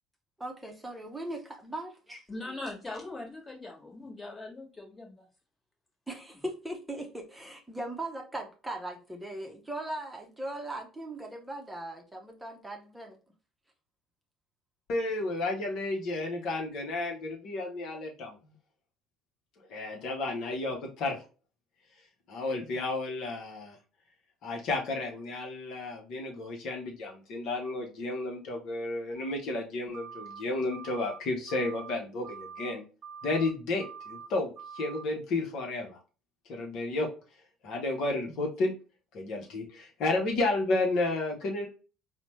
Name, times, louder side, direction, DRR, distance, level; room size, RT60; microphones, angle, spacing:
voice 1, 0.4-2.2 6.1-13.2, right 1 dB, 10° right, 0.7 m, -39 dB
voice 2, 2.3-5.3, left 2 dB, 20° left, 1.3 m, -41 dB
voice 3, 14.9-18.4 19.7-21.2 22.3-23.8 24.4-32.8 33.2-36.0 36.5-37.1 37.6-38.7 39.1-41.7, left 2 dB, 60° left, 0.8 m, -32 dB
sound 1, 29.9-30.4 30.7-31.2 31.5-32.0 32.2-32.7 33.0-33.5 33.8-34.3 34.6-35.0, right 6 dB, 50° right, 0.4 m, -44 dB
4.1 x 2.1 x 3.0 m
hypercardioid pair, 60°, 0 cm